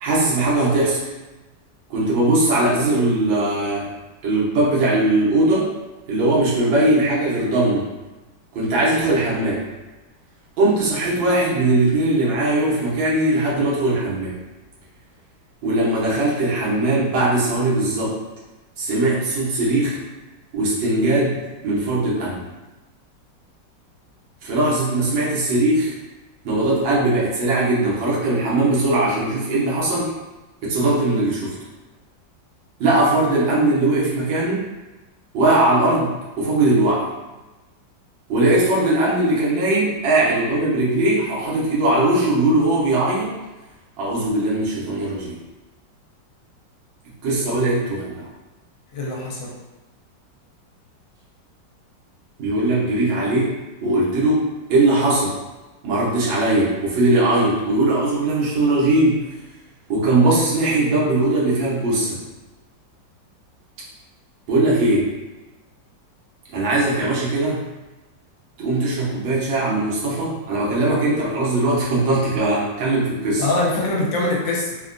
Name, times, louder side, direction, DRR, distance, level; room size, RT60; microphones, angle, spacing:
voice 1, 0.0-1.0 1.9-3.9 4.2-5.7 6.1-7.9 8.5-9.6 10.6-14.4 15.6-18.2 18.8-20.0 20.5-21.4 21.6-22.4 24.4-25.9 26.4-30.1 30.6-31.6 32.8-34.7 35.3-37.1 38.3-43.4 44.0-45.4 47.2-48.3 52.4-55.4 55.8-59.2 59.9-62.2 64.5-65.1 66.5-67.6 68.6-73.4, right 2 dB, 85° right, -6 dB, 1.6 m, -20 dB
voice 2, 48.9-49.5 73.4-74.8, left 2 dB, 85° left, -3 dB, 1.3 m, -23 dB
3.6 x 2.1 x 2.5 m, 1.1 s
omnidirectional pair, 2.0 m